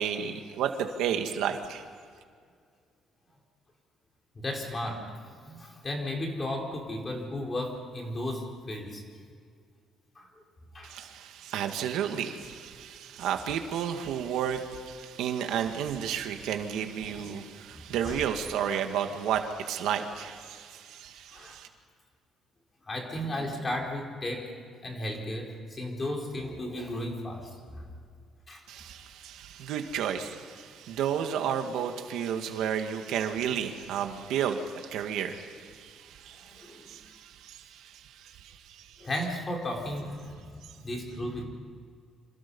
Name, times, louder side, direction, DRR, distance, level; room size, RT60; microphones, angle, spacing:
voice 1, 0.0-1.8 10.8-21.7 28.7-39.1, right 8 dB, 80° right, 5 dB, 2.1 m, -32 dB
voice 2, 4.3-9.0 10.2-10.3 10.7-11.1 17.0-17.2 17.7-18.2 18.7-18.8 21.3-21.6 22.9-24.5 24.8-27.9 28.5-28.6 36.3-37.0 39.0-41.4, left 1 dB, 20° left, 1 dB, 4.3 m, -35 dB
28.0 x 27.0 x 5.6 m, 2.1 s
cardioid pair, 170°, 0 cm